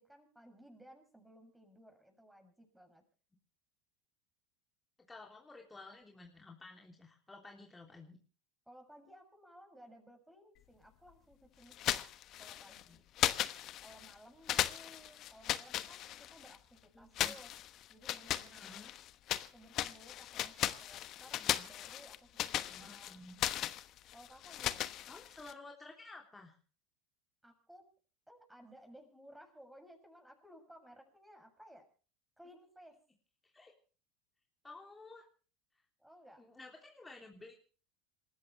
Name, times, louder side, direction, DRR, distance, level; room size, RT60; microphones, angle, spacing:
voice 1, 0.0-3.0 8.7-12.1 12.4-13.0 13.8-17.5 17.9-18.7 19.4-23.2 24.1-24.9 27.4-27.9 28.3-31.9 32.4-33.0 36.0-36.4, equal, 5° right, 4 dB, 7.1 m, -58 dB
voice 2, 5.1-8.2 12.8-13.0 14.5-14.6 16.9-17.3 18.3-18.9 21.4-21.7 22.7-23.4 25.0-26.6 33.4-33.7 34.6-35.3 36.4-37.5, left 3 dB, 15° left, 0 dB, 3.3 m, -53 dB
sound 1, 11.7-12.8 13.2-14.1 14.5-16.6 17.1-19.5 19.7-25.5, left 13 dB, 50° left, 1.1 m, -37 dB
27.0 x 14.0 x 3.4 m, 0.39 s
hypercardioid pair, 80°, 0 cm